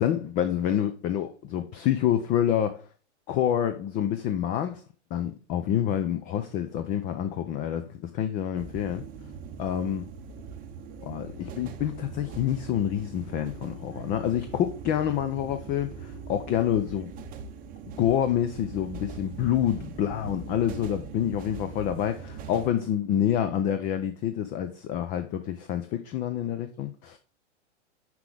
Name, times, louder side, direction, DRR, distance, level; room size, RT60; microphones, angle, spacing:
voice 1, 0.0-2.8 3.3-4.8 5.1-9.0 9.6-10.1 11.0-17.1 18.0-27.2, left 10 dB, 25° left, 0.4 m, -27 dB
sound 1, 8.6-22.7, right 5 dB, 25° right, 0.7 m, -41 dB
6.1 x 5.9 x 3.3 m
hypercardioid pair, 130°, 36 cm